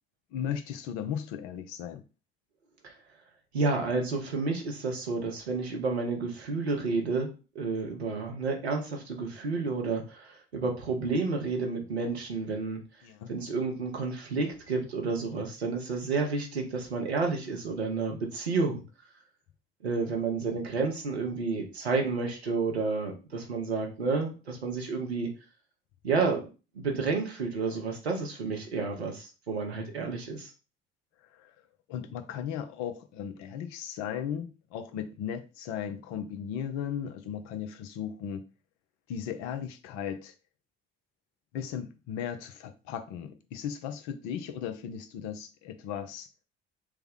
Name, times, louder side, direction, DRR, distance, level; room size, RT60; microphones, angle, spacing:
voice 1, 0.3-2.0 13.0-13.3 31.3-31.5 31.9-38.4 39.1-40.3 41.5-46.3, left 8 dB, 60° left, 0.6 m, -36 dB
voice 2, 3.5-12.8 13.3-18.8 19.8-25.3 26.0-26.5 26.7-30.5, right 4 dB, 90° right, 0.7 m, -30 dB
3.4 x 2.1 x 3.5 m
figure-of-eight pair, 50°, 31 cm